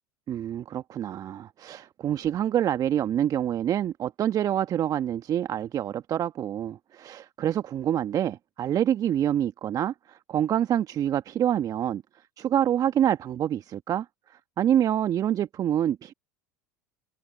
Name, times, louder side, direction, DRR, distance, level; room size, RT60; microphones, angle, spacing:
voice 1, 0.3-12.0 12.4-14.1 14.6-16.1, right 10 dB, 40° right, 1.3 m, -26 dB
hypercardioid pair, 80°, 10 cm